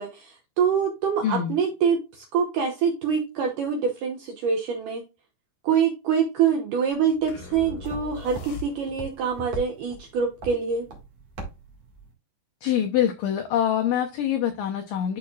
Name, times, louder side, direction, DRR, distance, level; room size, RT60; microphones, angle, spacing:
voice 1, 0.0-5.0 5.6-10.9, right 6 dB, 75° right, 2 dB, 1.9 m, -25 dB
voice 2, 1.2-1.6 12.6-15.2, left 10 dB, 90° left, 5 dB, 1.9 m, -25 dB
sound 1, 6.9-12.1, right 3 dB, 50° right, 2.4 m, -42 dB
sound 2, 7.3-9.2, left 6 dB, 70° left, 2.2 m, -40 dB
11.0 x 4.1 x 2.3 m, 0.27 s
omnidirectional pair, 4.9 m